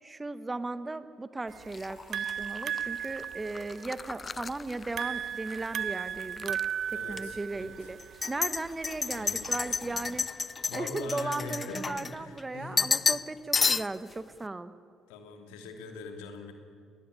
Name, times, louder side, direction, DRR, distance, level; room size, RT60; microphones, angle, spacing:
voice 1, 0.0-6.6 7.1-8.0 8.3-10.2 10.7-14.7, right 2 dB, 20° right, 12 dB, 1.4 m, -36 dB
sound 1, 1.5-10.2, right 9 dB, 60° right, 0.7 m, -37 dB
sound 2, 1.7-5.7 6.0-6.6 7.1-7.2 8.0-12.4 12.8-13.3 13.5-14.1, left 5 dB, 35° left, 0.5 m, -32 dB
voice 2, 6.9-7.9 9.1-12.9 15.1-16.5, left 3 dB, 85° left, 5 dB, 2.9 m, -43 dB
21.5 x 18.5 x 9.9 m, 2.1 s
hypercardioid pair, 60°, 0 cm